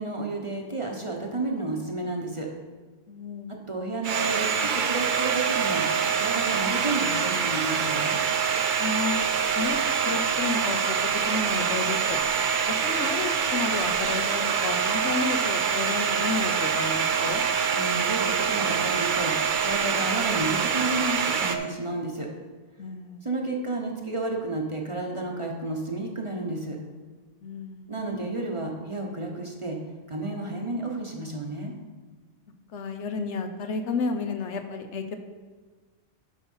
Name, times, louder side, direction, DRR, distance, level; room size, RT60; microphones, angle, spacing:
voice 1, 0.0-2.5 3.7-5.8 6.2-8.2 17.7-22.3 23.2-26.8 27.9-29.8 30.1-31.7, right 2 dB, 30° right, 0 dB, 1.0 m, -31 dB
voice 2, 3.1-3.5 8.8-9.2 9.6-12.2 12.8-17.4 22.8-23.2 27.4-27.9 32.7-35.2, left 4 dB, 70° left, 7 dB, 1.0 m, -32 dB
Domestic sounds home sounds, 4.0-21.6, right 6 dB, 55° right, 0.6 m, -25 dB
8.6 x 5.6 x 5.5 m, 1.3 s
omnidirectional pair, 1.3 m